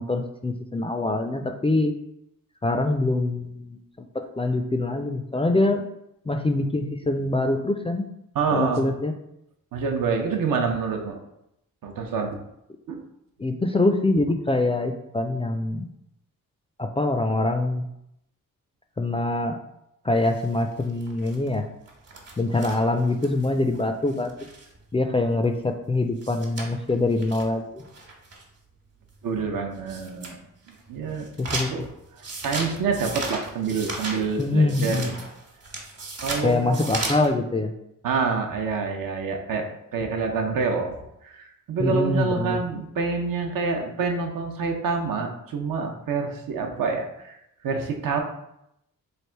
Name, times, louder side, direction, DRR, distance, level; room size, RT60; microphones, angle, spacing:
voice 1, 0.0-1.9 2.6-5.9 6.3-8.1 8.5-9.1 13.4-15.9 16.8-17.9 19.0-19.6 20.0-21.7 22.4-24.3 24.9-27.8 31.4-31.7 34.4-35.2 36.4-37.7 41.8-42.6, left 2 dB, 20° left, 5 dB, 0.3 m, -24 dB
voice 2, 8.3-8.9 9.7-11.2 11.8-12.4 12.9-13.0 14.1-14.3 29.2-30.4 30.9-31.3 31.7-31.9 32.4-35.2 36.2-36.8 38.0-39.7 39.9-41.0 41.2-47.4 47.6-48.2, right 5 dB, 75° right, 3 dB, 0.7 m, -27 dB
sound 1, 20.3-24.8 25.1-25.2 25.4-25.5 25.8-25.9 26.2-28.5 29.1-29.2 29.7-30.3 30.7-37.3, right 3 dB, 50° right, 1.2 m, -36 dB
3.3 x 2.5 x 4.4 m, 0.81 s
cardioid pair, 70°, 34 cm